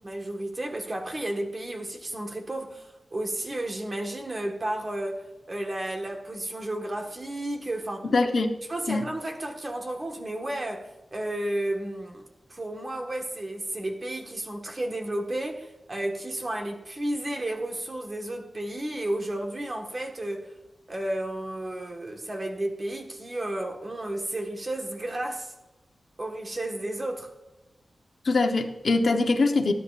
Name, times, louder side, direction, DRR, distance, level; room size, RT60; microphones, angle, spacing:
voice 1, 0.0-8.1 8.7-20.5 20.9-25.5 26.2-27.3, right 1 dB, 30° right, 1.6 m, -32 dB
voice 2, 8.0-8.5 8.9-9.1 28.2-29.7, left 3 dB, 55° left, 1.1 m, -23 dB
18.5 x 9.7 x 2.5 m
wide cardioid pair, 145°, 0 cm